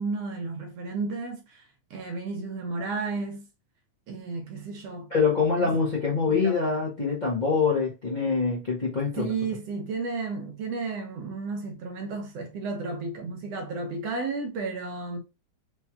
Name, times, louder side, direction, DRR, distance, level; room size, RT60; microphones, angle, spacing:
voice 1, 0.0-1.7 1.9-3.5 4.1-5.1 5.6-5.7 6.3-6.6 9.2-15.2, right 4 dB, 65° right, 2.0 m, -33 dB
voice 2, 5.1-9.3, left 5 dB, 45° left, 0.5 m, -25 dB
5.2 x 3.1 x 2.4 m
omnidirectional pair, 3.3 m